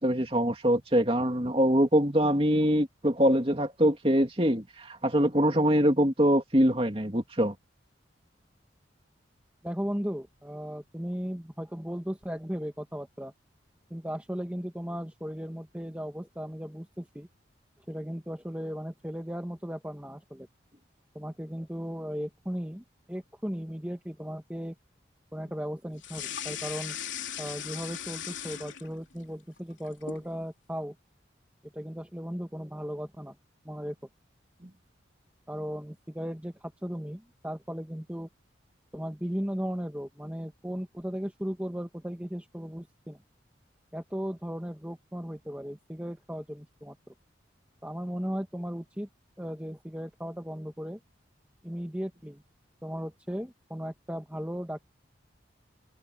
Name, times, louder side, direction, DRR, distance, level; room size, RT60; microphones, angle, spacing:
voice 1, 0.0-7.5, equal, 30° right, 3.0 m, -24 dB
voice 2, 9.6-13.3 13.9-17.3 17.9-20.5 21.1-24.7 25.3-27.0 27.4-30.9 31.7-33.4 33.6-33.9 35.5-38.3 38.9-43.2 43.9-46.9 47.8-49.1 49.4-51.0 51.6-52.4 52.8-54.9, equal, 10° right, 1.6 m, -36 dB
sound 1, 26.0-29.2 29.6-30.3, left 9 dB, 80° left, 3.1 m, -38 dB
head